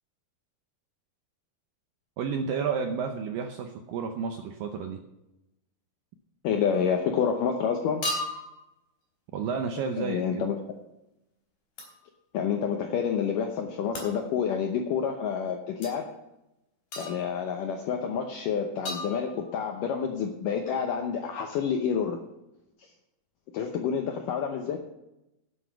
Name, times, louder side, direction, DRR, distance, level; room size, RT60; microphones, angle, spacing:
voice 1, 2.2-5.0 9.3-10.5, right 6 dB, 80° right, 4 dB, 2.0 m, -31 dB
voice 2, 6.4-8.1 10.0-10.6 12.3-16.1 17.0-22.2 22.8-22.9 23.5-24.8, left 7 dB, 80° left, 3 dB, 1.9 m, -28 dB
sound 1, 6.7-6.9 8.0-8.6 11.8-12.0 14.0-14.2 15.8-15.9 16.9-17.4 18.9-19.7, left 1 dB, 50° left, 5.2 m, -35 dB
11.5 x 8.4 x 5.9 m, 0.91 s
omnidirectional pair, 4.9 m